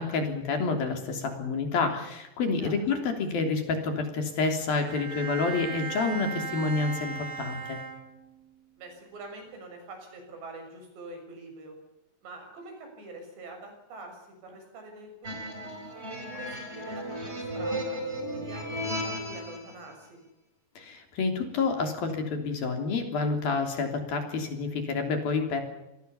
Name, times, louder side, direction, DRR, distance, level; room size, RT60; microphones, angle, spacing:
voice 1, 0.0-7.8 20.8-25.6, left 4 dB, 55° left, 5 dB, 4.9 m, -29 dB
Bowed string instrument, 4.9-8.5, right 4 dB, 85° right, 7.1 m, -37 dB
voice 2, 8.8-11.7 12.2-15.8 16.1-18.0 18.3-20.2, right 2 dB, 70° right, 4 dB, 8.8 m, -45 dB
sound 1, 15.2-19.7, equal, 15° right, 4.5 m, -35 dB
28.0 x 19.5 x 7.2 m, 0.90 s
omnidirectional pair, 5.1 m